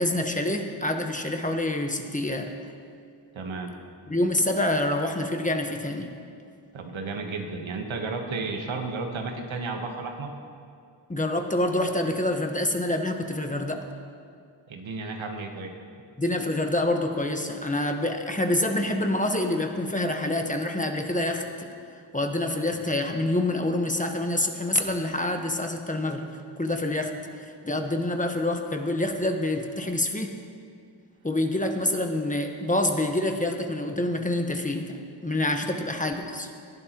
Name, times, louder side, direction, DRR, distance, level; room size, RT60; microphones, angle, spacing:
voice 1, 0.0-2.5 4.1-6.1 11.1-13.8 16.2-21.7 22.1-30.4 31.2-35.0 35.2-36.5, left 1 dB, 15° left, 4 dB, 1.3 m, -27 dB
voice 2, 3.3-3.7 6.7-10.3 14.7-15.7, right 3 dB, 75° right, 3 dB, 1.4 m, -33 dB
19.0 x 11.0 x 3.0 m, 2.3 s
cardioid pair, 50°, 47 cm